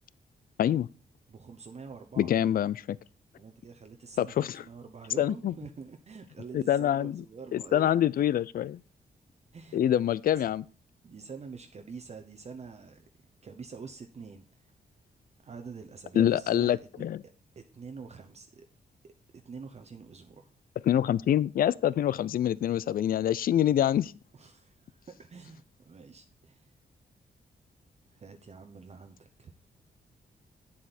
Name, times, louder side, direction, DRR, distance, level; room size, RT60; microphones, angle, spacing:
voice 1, 1.3-2.3 3.4-7.9 9.5-9.8 10.4-10.5 11.0-13.0 13.4-14.4 15.4-18.7 19.0-19.1 19.4-20.5 24.3-26.7 28.1-29.5, right 5 dB, 40° right, 0.8 m, -46 dB
voice 2, 2.2-3.0 4.2-4.6 5.2-5.5 6.5-7.2 7.5-8.8 9.7-10.6 16.1-17.2 20.8-24.1, left 11 dB, 60° left, 0.4 m, -26 dB
8.6 x 7.7 x 4.2 m
cardioid pair, 105°, 17 cm